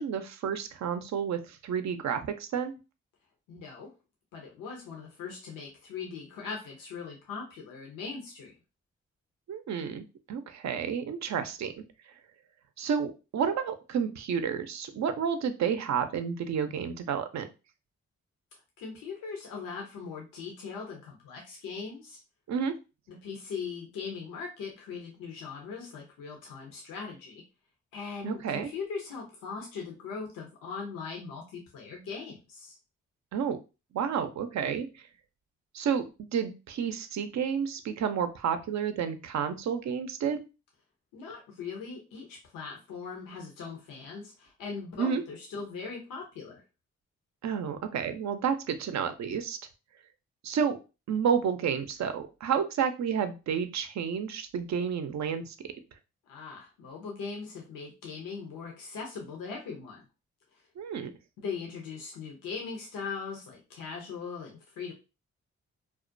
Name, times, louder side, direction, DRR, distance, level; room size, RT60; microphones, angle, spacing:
voice 1, 0.0-2.8 9.5-11.7 12.8-17.5 22.5-22.7 28.2-28.7 33.3-33.6 33.9-34.9 35.7-36.0 36.3-40.5 45.0-45.2 47.4-49.6 50.4-50.8 51.1-55.5 60.8-61.1, right 7 dB, 55° right, 9 dB, 0.5 m, -30 dB
voice 2, 3.5-3.9 4.3-8.5 18.8-22.2 23.1-27.4 27.9-32.8 41.1-46.6 56.3-60.0 60.5-60.6 61.4-64.9, left 5 dB, 80° left, 0 dB, 0.7 m, -40 dB
2.3 x 2.1 x 2.5 m, 0.30 s
supercardioid pair, 40°, 33 cm